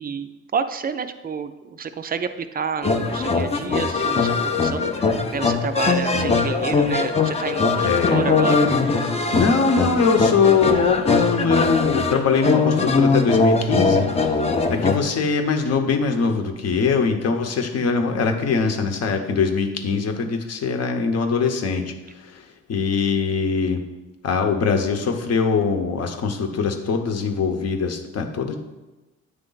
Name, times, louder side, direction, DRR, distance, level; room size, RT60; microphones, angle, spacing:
voice 1, 0.0-8.7, right 6 dB, 30° right, 10 dB, 0.4 m, -29 dB
sound 1, 2.8-15.0, left 4 dB, 20° left, 0.5 m, -21 dB
voice 2, 7.8-8.2 9.3-22.4 22.7-23.8 24.2-28.6, left 5 dB, 55° left, 5 dB, 0.8 m, -22 dB
9.1 x 3.2 x 3.9 m, 1.1 s
cardioid pair, 90°, 30 cm